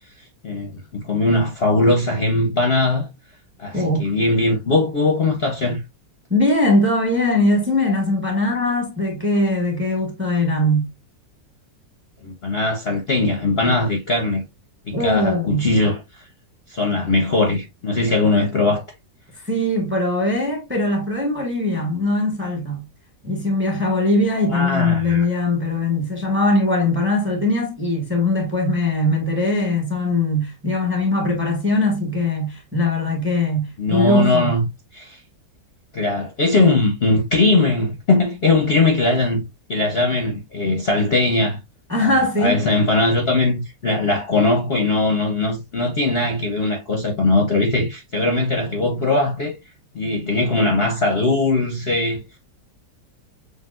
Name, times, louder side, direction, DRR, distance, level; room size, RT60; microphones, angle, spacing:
voice 1, 0.4-3.1 3.6-5.8 12.2-14.4 14.9-16.3 16.7-18.8 24.5-25.3 33.8-34.7 34.9-35.2 35.9-41.6 42.0-49.5 49.9-52.2, left 2 dB, 45° left, 0.9 m, -20 dB
voice 2, 6.3-10.9 14.9-15.7 19.4-22.8 23.2-34.5 41.9-42.6, left 2 dB, 10° right, 1.1 m, -21 dB
6.5 x 2.7 x 2.5 m
omnidirectional pair, 1.9 m